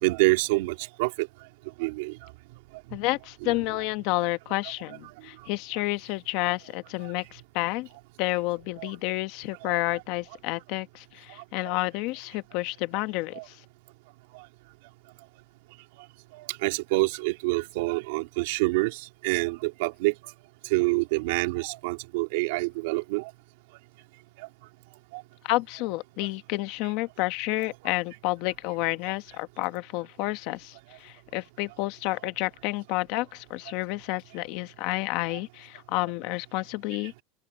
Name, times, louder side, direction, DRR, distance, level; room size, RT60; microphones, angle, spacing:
voice 1, 0.0-1.3 1.8-2.2 3.4-3.5 8.8-8.9 9.6-9.8 13.3-13.4 16.3-20.1 20.7-23.3 24.4-24.5 25.1-25.2, right 24 dB, 65° right, 3.4 m, -27 dB
voice 2, 2.9-7.9 8.2-13.6 25.4-37.1, left 20 dB, 50° left, 1.1 m, -30 dB
open air
supercardioid pair, 165°, 0 cm